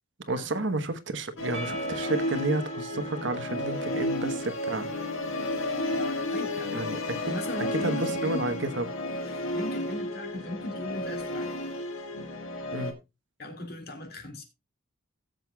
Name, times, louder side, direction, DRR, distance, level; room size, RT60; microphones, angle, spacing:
voice 1, 0.2-4.9 6.7-7.3 7.7-8.9 12.7-13.0, right 2 dB, 65° right, 1.1 m, -31 dB
Musical instrument, 1.4-12.9, left 1 dB, 80° left, 1.7 m, -32 dB
Percussion / Church bell, 1.5-6.5, right 2 dB, 35° right, 1.8 m, -45 dB
voice 2, 5.9-6.9 7.3-8.5 9.3-11.6 13.4-14.4, left 2 dB, 50° left, 2.1 m, -38 dB
17.0 x 7.8 x 2.3 m
head